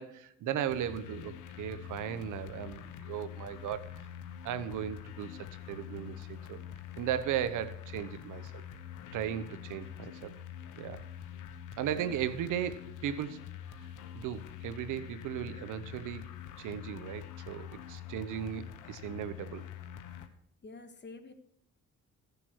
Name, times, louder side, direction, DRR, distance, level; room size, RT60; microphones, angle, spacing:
voice 1, 0.0-3.9 4.4-6.6 7.0-8.6 9.1-10.4 10.8-11.0 11.8-13.4 14.1-16.3 16.6-19.7, right 10 dB, 85° right, 13 dB, 1.0 m, -36 dB
sound 1, 0.7-20.3, left 9 dB, 90° left, 1.2 m, -45 dB
voice 2, 20.6-21.3, left 3 dB, 35° left, 7 dB, 1.7 m, -48 dB
16.0 x 6.8 x 4.6 m, 0.76 s
cardioid pair, 90°, 30 cm